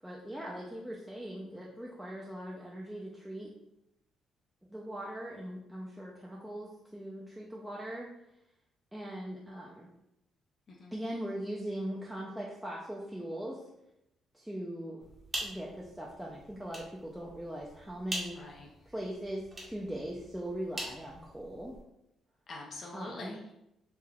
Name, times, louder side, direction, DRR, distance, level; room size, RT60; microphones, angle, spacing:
voice 1, 0.0-3.5 4.7-8.1 8.9-9.9 10.9-13.6 14.3-15.0 15.4-18.4 18.9-21.7 22.9-23.4, right 1 dB, 5° right, -4 dB, 0.4 m, -40 dB
voice 2, 10.7-11.0 18.3-18.7 22.5-23.5, left 2 dB, 50° left, -2 dB, 0.4 m, -45 dB
sound 1, 15.0-21.8, right 1 dB, 30° right, 0.8 m, -44 dB
3.3 x 2.3 x 2.2 m, 0.85 s
cardioid pair, 90°, 0 cm